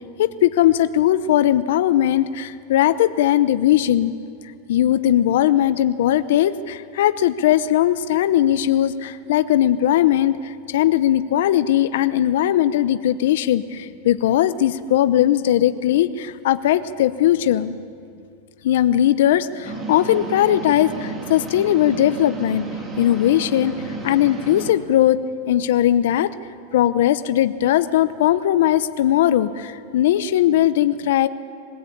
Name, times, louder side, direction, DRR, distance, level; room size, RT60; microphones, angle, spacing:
voice 1, 0.2-4.1 4.7-17.8 18.6-22.7 23.0-23.8 24.0-25.2 25.5-26.3 26.7-31.3, left 12 dB, 70° left, 12 dB, 0.8 m, -19 dB
sound 1, 19.6-24.7, right 3 dB, 25° right, 3.1 m, -32 dB
23.0 x 16.5 x 8.7 m, 2.4 s
supercardioid pair, 135°, 0 cm